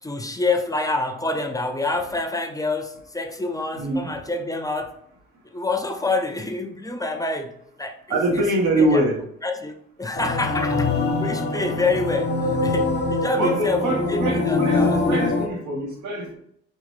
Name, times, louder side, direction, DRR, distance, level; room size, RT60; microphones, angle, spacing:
voice 1, 0.0-5.0 5.5-8.5 8.8-9.0 9.4-15.2, left 2 dB, 10° left, 0.6 m, -27 dB
voice 2, 3.7-4.1 8.1-9.2 13.4-16.3, right 1 dB, 80° right, 1.4 m, -23 dB
sound 1, 10.1-15.5, left 3 dB, 35° left, 0.9 m, -23 dB
5.1 x 3.1 x 3.2 m
cardioid pair, 90°, 30 cm